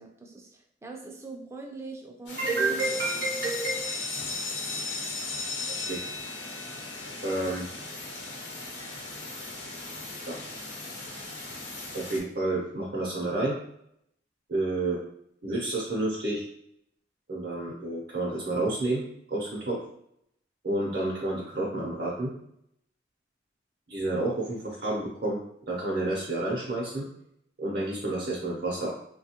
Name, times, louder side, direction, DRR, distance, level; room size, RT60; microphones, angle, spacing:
voice 1, 0.0-2.8 3.4-3.5, right 3 dB, 15° right, 1 dB, 0.4 m, -43 dB
sound 1, 2.3-12.2, left 2 dB, 75° left, 0.9 m, -40 dB
voice 2, 2.4-3.8 5.8-6.0 7.2-7.6 10.2-10.4 11.9-13.6 14.5-15.0 15.4-16.5 17.3-19.0 19.3-19.8 20.6-22.3 23.9-25.4 25.7-27.1 27.6-28.9, right 2 dB, 55° right, -5 dB, 0.6 m, -29 dB
sound 2, 2.8-8.4, left 4 dB, 90° left, 0.5 m, -36 dB
3.1 x 2.3 x 2.8 m, 0.73 s
head